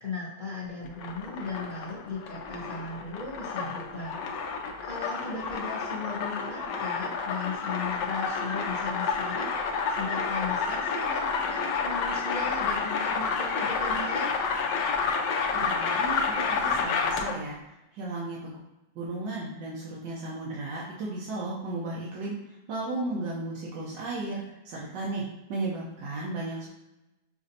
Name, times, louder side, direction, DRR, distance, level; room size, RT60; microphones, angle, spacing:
voice 1, 0.0-4.2 4.8-14.3, left 4 dB, 60° left, -6 dB, 0.5 m, -37 dB
sound 1, 0.8-17.5, left 5 dB, 80° left, 1.2 m, -30 dB
voice 2, 15.5-17.6 17.9-18.6 19.0-22.3 22.7-25.2 25.5-26.7, right 2 dB, 85° right, -5 dB, 1.5 m, -34 dB
6.3 x 2.5 x 2.6 m, 0.96 s
omnidirectional pair, 1.9 m